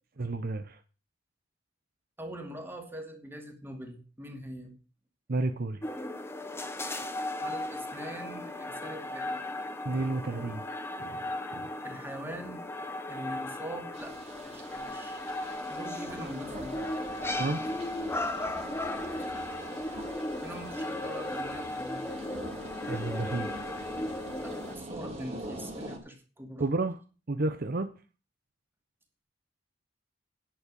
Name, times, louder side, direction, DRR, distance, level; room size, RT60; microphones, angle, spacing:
voice 1, 0.2-0.8 5.3-5.8 9.8-10.6 11.0-11.2 11.5-11.7 17.4-17.7 22.9-23.7 26.6-27.0 27.3-27.9, right 2 dB, 50° right, 9 dB, 0.7 m, -31 dB
voice 2, 2.2-4.7 7.4-9.5 11.8-15.2 15.7-16.8 20.4-22.0 24.4-26.7, right 1 dB, 10° right, 3 dB, 2.4 m, -43 dB
sound 1, 5.8-24.7, left 1 dB, 15° left, 1.1 m, -36 dB
sound 2, 13.9-26.0, right 1 dB, 35° right, 2.7 m, -43 dB
10.5 x 7.3 x 6.7 m, 0.36 s
head